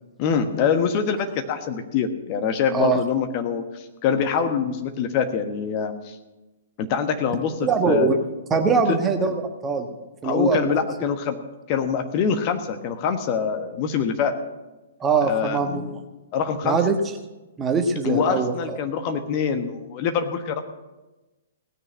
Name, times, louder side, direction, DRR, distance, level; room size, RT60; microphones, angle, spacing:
voice 1, 0.2-6.2 6.8-7.5 7.8-8.1 8.9-9.0 10.2-11.3 11.7-14.3 15.2-15.9 16.3-16.8 18.0-20.6, left 7 dB, 35° left, 6 dB, 1.3 m, -24 dB
voice 2, 7.6-8.2 8.5-9.9 10.2-10.7 15.0-16.0 16.6-17.0 17.6-18.8, right 5 dB, 15° right, 5 dB, 1.4 m, -22 dB
18.0 x 6.7 x 8.8 m, 1.1 s
figure-of-eight pair, 115°, 0 cm